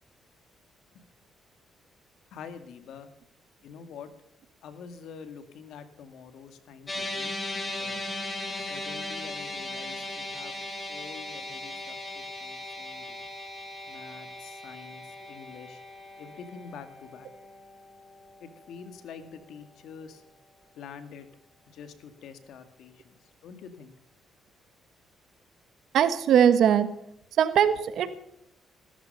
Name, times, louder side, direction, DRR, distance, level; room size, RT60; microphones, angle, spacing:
voice 1, 2.3-3.1 3.6-4.1 4.6-8.0 8.5-10.6 10.9-13.2 13.9-15.8 16.2-17.3 18.4-20.2 20.7-21.3 21.7-23.9, left 6 dB, 80° left, 10 dB, 2.0 m, -46 dB
sound 1, 6.9-19.3, left 1 dB, 20° left, 3.7 m, -38 dB
voice 2, 25.9-26.9 27.4-28.3, right 9 dB, 75° right, 12 dB, 1.5 m, -21 dB
15.5 x 13.5 x 5.5 m, 0.74 s
cardioid pair, 90°, 0 cm